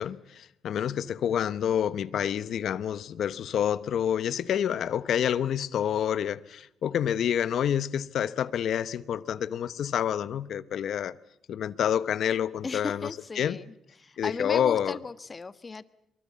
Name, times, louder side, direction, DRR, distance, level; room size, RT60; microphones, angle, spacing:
voice 1, 0.0-11.1 11.5-13.1 13.4-13.6 14.2-15.0, left 9 dB, 70° left, 0.9 m, -28 dB
voice 2, 12.6-15.9, left 4 dB, 30° left, 1.3 m, -37 dB
23.5 x 23.0 x 8.5 m
cardioid pair, 90°, 0 cm